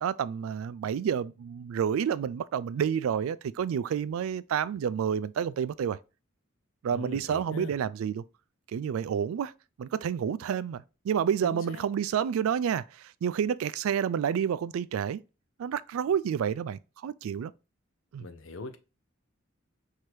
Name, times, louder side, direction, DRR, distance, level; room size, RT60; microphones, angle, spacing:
voice 1, 0.0-6.0 6.8-8.2 8.7-9.5 9.8-15.2 15.6-17.5 18.1-18.3, right 8 dB, 90° right, 0.3 m, -29 dB
voice 2, 6.9-7.7 11.4-11.8 18.2-18.8, left 2 dB, 70° left, 0.7 m, -41 dB
6.0 x 2.8 x 3.2 m
head